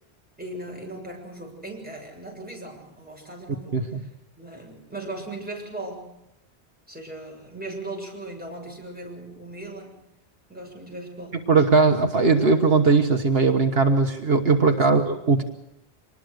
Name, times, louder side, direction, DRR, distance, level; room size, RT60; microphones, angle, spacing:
voice 1, 0.4-6.2 6.9-10.0 10.5-11.5 14.9-15.1, right 2 dB, 10° right, 0 dB, 7.0 m, -38 dB
voice 2, 11.5-15.4, right 4 dB, 70° right, 5 dB, 1.6 m, -19 dB
25.0 x 20.5 x 6.6 m, 0.86 s
omnidirectional pair, 1.1 m